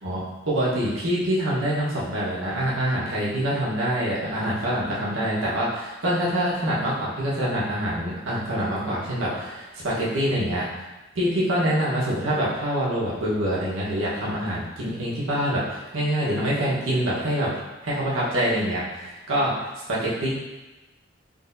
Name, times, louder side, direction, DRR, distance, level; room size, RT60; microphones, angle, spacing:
voice 1, 0.0-10.7 11.1-17.5 17.8-19.5 19.9-20.3, equal, 85° right, -6 dB, 1.2 m, -25 dB
4.1 x 3.4 x 2.6 m, 1.1 s
head